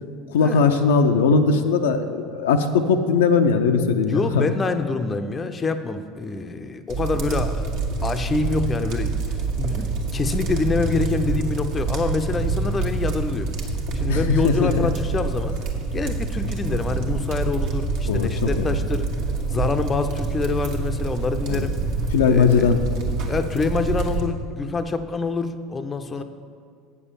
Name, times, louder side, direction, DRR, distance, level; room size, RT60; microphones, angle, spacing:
voice 1, 0.3-4.5 14.1-14.9 18.1-18.7 21.5-21.7 22.1-22.8, left 5 dB, 65° left, 5 dB, 0.5 m, -19 dB
voice 2, 4.1-7.7 8.0-9.1 9.6-13.5 13.9-15.6 15.9-19.1 19.5-21.7 22.3-22.8 23.2-26.2, left 4 dB, 25° left, 9 dB, 0.6 m, -26 dB
sound 1, 6.9-24.2, right 3 dB, 55° right, 1.3 m, -26 dB
8.5 x 6.9 x 7.1 m, 2.1 s
figure-of-eight pair, 70°, 0 cm